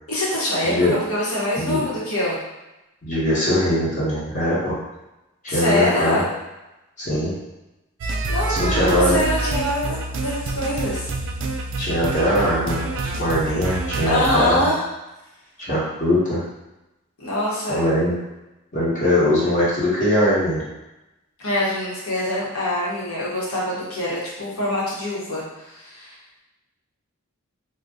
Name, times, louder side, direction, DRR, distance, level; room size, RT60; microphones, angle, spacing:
voice 1, 0.1-2.4 5.5-6.3 8.3-11.1 14.0-14.8 17.2-17.8 21.4-26.1, left 1 dB, 75° left, -6 dB, 1.0 m, -24 dB
voice 2, 3.0-4.7 5.4-6.2 7.0-7.3 8.5-9.1 11.8-12.9 13.2-14.7 15.6-16.4 17.7-18.1 18.7-20.6, equal, 35° left, -8 dB, 1.1 m, -21 dB
sound 1, 8.0-14.6, right 2 dB, 60° right, 0.3 m, -27 dB
2.6 x 2.2 x 3.6 m, 0.97 s
head